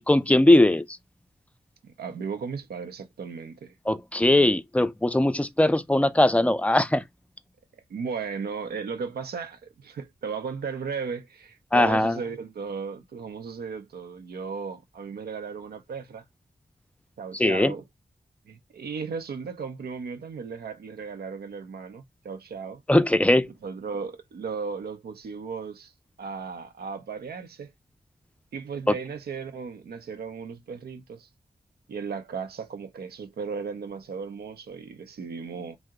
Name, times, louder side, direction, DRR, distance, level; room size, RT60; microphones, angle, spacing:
voice 1, 0.1-0.8 3.9-7.0 11.7-12.2 17.4-17.7 22.9-23.5 28.9-29.0, left 1 dB, 10° left, 0.4 m, -20 dB
voice 2, 1.8-3.7 7.9-16.2 17.2-17.8 18.5-22.8 23.6-25.9 26.2-27.7 28.5-31.3 31.9-35.8, right 5 dB, 90° right, 0.6 m, -35 dB
2.7 x 2.0 x 3.5 m
cardioid pair, 40°, 16 cm